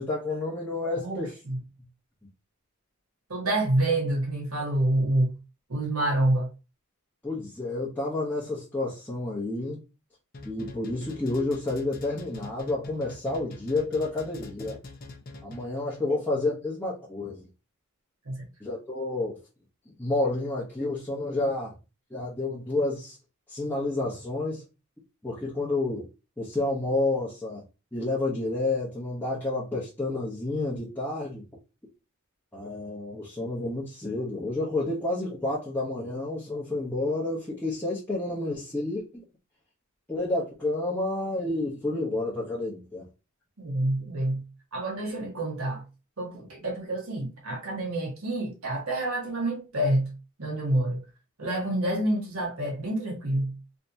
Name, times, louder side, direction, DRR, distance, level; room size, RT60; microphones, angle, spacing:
voice 1, 0.0-1.3 7.2-9.8 10.4-14.8 15.4-17.4 18.6-19.4 20.0-21.7 22.1-23.2 23.5-24.6 25.2-26.1 26.4-27.6 27.9-31.4 32.5-39.2 40.1-43.1, left 2 dB, 10° left, 0.9 m, -30 dB
voice 2, 1.0-1.6 3.3-5.3 5.7-6.5 16.0-16.2 18.2-18.5 43.6-44.4 44.7-45.8 46.2-50.1 50.4-51.0 51.4-53.5, right 1 dB, 90° right, 1.5 m, -27 dB
sound 1, 10.3-15.9, left 2 dB, 45° left, 0.7 m, -43 dB
3.4 x 2.8 x 2.7 m
head